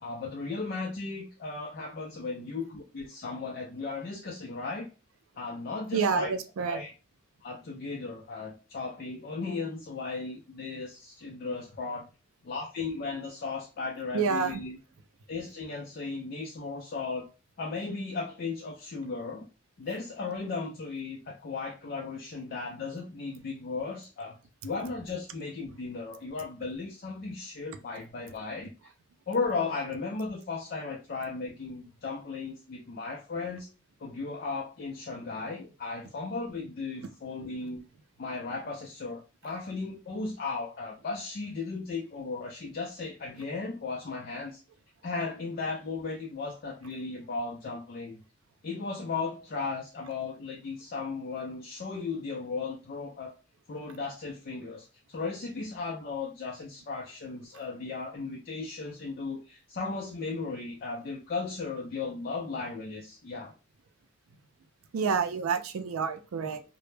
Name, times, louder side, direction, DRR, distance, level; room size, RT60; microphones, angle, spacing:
voice 1, 0.0-4.9 5.4-6.3 6.7-6.9 7.4-12.1 12.4-14.8 15.3-17.3 17.6-19.5 19.8-24.4 24.6-28.7 29.3-33.7 34.0-37.9 38.2-44.6 45.0-48.2 48.6-53.3 53.7-63.5, left 4 dB, 45° left, -1 dB, 0.4 m, -36 dB
voice 2, 5.9-6.8 14.1-14.6 64.9-66.6, right 5 dB, 85° right, 9 dB, 0.4 m, -28 dB
2.1 x 2.0 x 3.1 m, 0.31 s
head